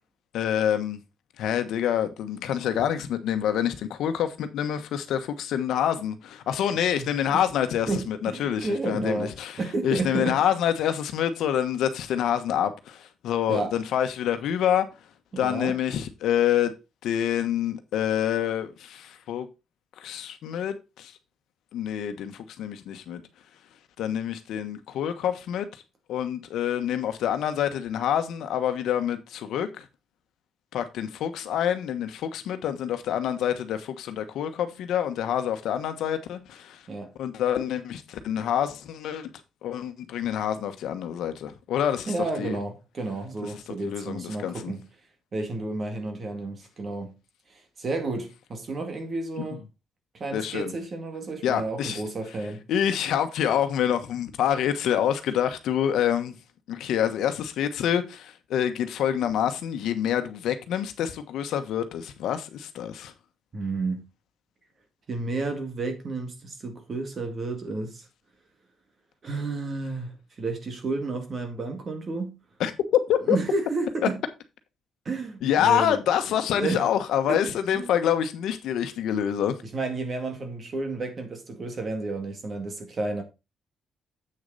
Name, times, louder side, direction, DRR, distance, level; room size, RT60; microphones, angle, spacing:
voice 1, 0.3-1.0 1.4-14.9 15.4-16.7 17.0-19.5 20.0-21.1 21.7-23.2 24.0-25.7 26.1-29.8 30.7-36.8 37.2-39.3 39.6-42.6 43.8-44.7 50.3-50.7 51.4-52.0 52.7-56.3 56.7-63.1 72.6-73.4 75.4-79.5, left 9 dB, 80° left, 1.2 m, -27 dB
voice 2, 7.0-7.4 7.9-10.4 13.5-13.7 15.3-15.8 36.9-37.1 42.1-44.9 45.3-47.1 47.5-49.6 50.2-52.6 63.5-64.0 65.1-68.0 69.2-72.4 73.3-74.2 75.1-76.0 76.5-76.8 77.3-77.9 79.6-83.2, right 3 dB, 30° right, 2.0 m, -31 dB
8.0 x 6.7 x 4.0 m
cardioid pair, 175°, 0 cm